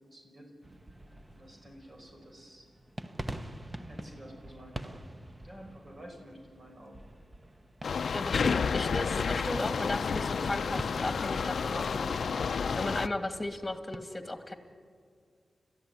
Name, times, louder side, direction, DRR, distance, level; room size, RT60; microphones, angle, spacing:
voice 1, 0.1-0.5 1.3-2.7 3.9-5.0 5.4-7.0, equal, 40° right, 1 dB, 5.6 m, -51 dB
sound 1, 0.6-14.0, right 1 dB, 20° right, 1.2 m, -46 dB
sound 2, 7.8-13.1, left 5 dB, 75° left, 0.7 m, -30 dB
voice 2, 8.1-12.2 12.8-14.5, left 1 dB, 20° left, 8 dB, 2.4 m, -35 dB
30.0 x 14.0 x 9.9 m, 2.1 s
cardioid pair, 70°, 0 cm